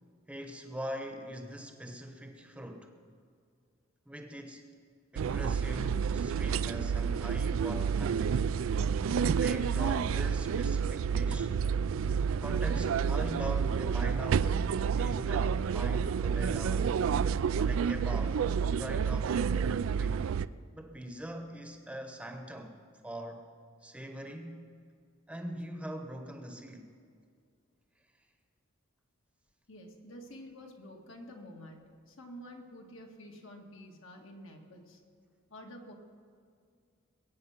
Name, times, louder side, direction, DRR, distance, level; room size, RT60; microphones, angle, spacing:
voice 1, 0.3-3.0 4.1-4.6 5.1-8.4 9.3-11.5 12.4-16.9 17.6-18.5 18.8-20.3 20.7-22.8 23.0-23.5 23.8-24.7 25.3-26.9, right 1 dB, 5° right, 4 dB, 0.9 m, -42 dB
sound 1, 5.2-20.5, right 6 dB, 80° right, 0.4 m, -29 dB
voice 2, 29.7-35.0 35.5-35.9, equal, 75° left, 1 dB, 2.0 m, -49 dB
21.5 x 8.7 x 5.8 m, 2.2 s
head